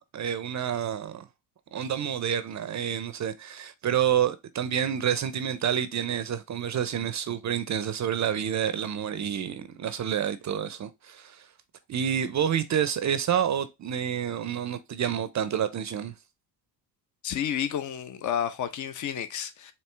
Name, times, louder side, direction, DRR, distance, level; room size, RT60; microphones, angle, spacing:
voice 1, 0.1-1.3 1.7-11.5 11.9-16.1, right 9 dB, 40° right, 0.6 m, -28 dB
voice 2, 17.2-19.7, left 9 dB, 40° left, 0.8 m, -31 dB
4.4 x 2.9 x 3.2 m
hypercardioid pair, 60°, 47 cm